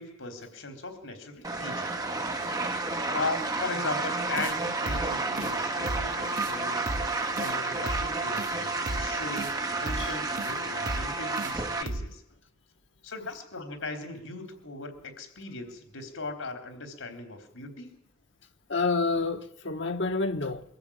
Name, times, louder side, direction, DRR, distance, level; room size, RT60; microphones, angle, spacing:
voice 1, 0.0-1.9 3.1-6.8 7.4-12.2 13.0-18.0, left 3 dB, 80° left, 3.9 m, -38 dB
sound 1, 1.4-11.8, right 3 dB, 20° right, 1.5 m, -31 dB
sound 2, 4.4-4.6 4.9-5.1 5.4-5.5 5.9-6.1 6.4-6.5 6.9-7.1 7.4-7.5 7.9-8.1 8.4-8.5 8.9-9.1 9.4-9.5 9.9-10.1 10.4-10.5 10.9-11.1 11.4-11.5 11.9-12.1, right 2 dB, 40° right, 0.8 m, -34 dB
voice 2, 18.7-20.6, left 3 dB, 60° left, 1.3 m, -28 dB
23.0 x 14.0 x 8.8 m
head